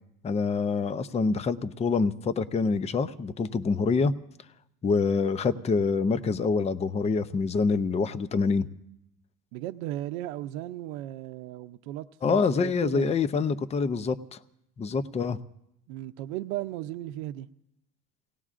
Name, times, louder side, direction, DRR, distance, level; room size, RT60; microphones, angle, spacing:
voice 1, 0.2-4.1 4.8-8.7 12.2-14.4 14.8-15.4, left 4 dB, 15° left, 0.5 m, -26 dB
voice 2, 9.5-13.1 15.9-17.5, right 14 dB, 85° right, 0.7 m, -36 dB
28.5 x 18.0 x 2.5 m
supercardioid pair, 115°, 41 cm